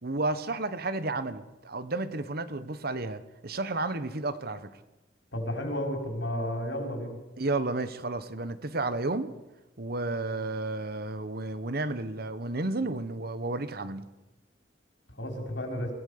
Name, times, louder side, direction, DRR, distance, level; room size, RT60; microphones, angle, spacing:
voice 1, 0.0-4.7 7.4-9.3 9.8-14.1, right 2 dB, 60° right, 12 dB, 1.3 m, -32 dB
voice 2, 5.3-7.2 15.2-15.9, equal, 90° left, 2 dB, 5.6 m, -32 dB
29.0 x 17.0 x 6.8 m, 1.1 s
head